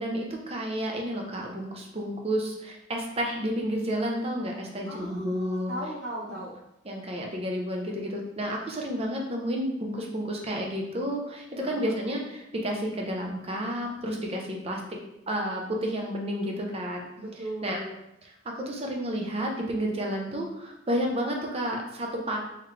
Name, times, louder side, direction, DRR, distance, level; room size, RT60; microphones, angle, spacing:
voice 1, 0.0-5.7 6.9-14.8 15.3-17.0 17.6-17.8 18.4-22.4, equal, 30° right, 0 dB, 0.7 m, -31 dB
voice 2, 4.8-6.5 11.6-12.0 17.2-18.0, right 1 dB, 55° right, -9 dB, 1.0 m, -37 dB
3.8 x 3.1 x 3.2 m, 0.84 s
head